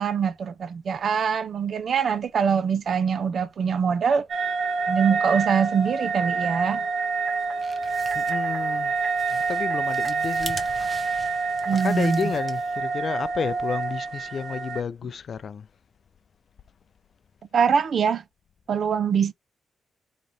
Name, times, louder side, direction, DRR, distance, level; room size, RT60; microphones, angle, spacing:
voice 1, 0.0-4.3 4.9-6.8 11.7-12.3 17.5-18.2 18.7-19.3, right 6 dB, 50° right, 0.4 m, -23 dB
sound 1, 4.3-14.8, right 4 dB, 70° right, 1.0 m, -27 dB
sound 2, 7.3-12.9, right 2 dB, 20° right, 0.7 m, -42 dB
voice 2, 8.1-8.9 9.3-10.7 11.3-11.5 11.8-15.7, left 6 dB, 45° left, 0.4 m, -31 dB
3.9 x 3.0 x 4.1 m
wide cardioid pair, 170°, 0 cm